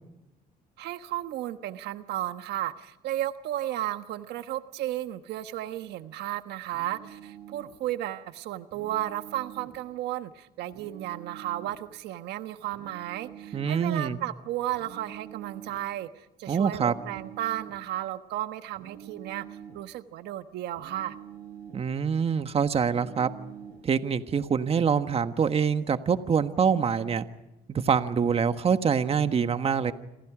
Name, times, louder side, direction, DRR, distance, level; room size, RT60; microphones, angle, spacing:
voice 1, 0.8-19.5 19.7-21.2, right 14 dB, 80° right, 9 dB, 1.3 m, -34 dB
sound 1, 6.7-7.8 8.7-9.8 10.7-11.8 12.7-13.8 14.7-15.9 16.7-17.9 18.7-19.9 20.7-21.9 22.8-23.9, right 9 dB, 65° right, 5.4 m, -46 dB
voice 2, 13.5-14.2 16.5-16.9 21.7-23.3 23.8-27.3 27.7-29.9, right 6 dB, 35° right, 9 dB, 1.5 m, -25 dB
28.5 x 26.5 x 5.0 m, 0.94 s
cardioid pair, 110°, 17 cm